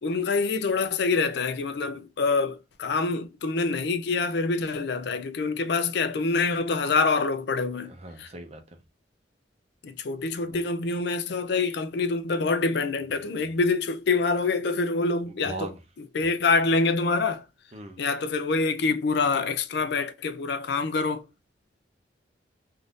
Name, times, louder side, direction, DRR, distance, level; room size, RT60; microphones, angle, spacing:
voice 1, 0.0-7.9 8.2-8.3 9.8-15.7 16.1-17.4 18.0-21.2, left 4 dB, 65° left, 0.4 m, -26 dB
voice 2, 7.8-8.6 10.4-10.6 15.3-15.8 17.7-18.0, right 2 dB, 35° right, 0.6 m, -39 dB
3.6 x 2.6 x 2.4 m
head